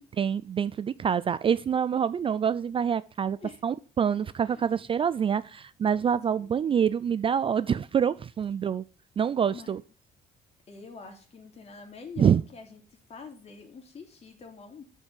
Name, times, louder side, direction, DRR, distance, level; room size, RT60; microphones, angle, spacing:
voice 1, 0.2-3.4 3.6-8.8 9.2-9.8 12.2-12.4, right 8 dB, 30° right, 16 dB, 0.4 m, -26 dB
voice 2, 10.7-14.8, left 5 dB, 40° left, 2 dB, 3.1 m, -46 dB
8.1 x 5.5 x 7.6 m, 0.38 s
cardioid pair, 110°, 17 cm